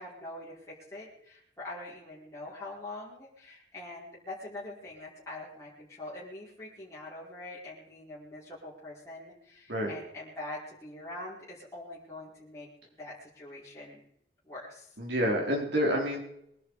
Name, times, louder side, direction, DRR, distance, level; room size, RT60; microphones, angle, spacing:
voice 1, 0.0-12.7 13.0-14.0 14.4-14.9, left 2 dB, 15° left, -8 dB, 5.1 m, -44 dB
voice 2, 15.0-16.2, equal, 70° right, 0 dB, 4.6 m, -28 dB
22.5 x 11.5 x 5.1 m, 0.74 s
head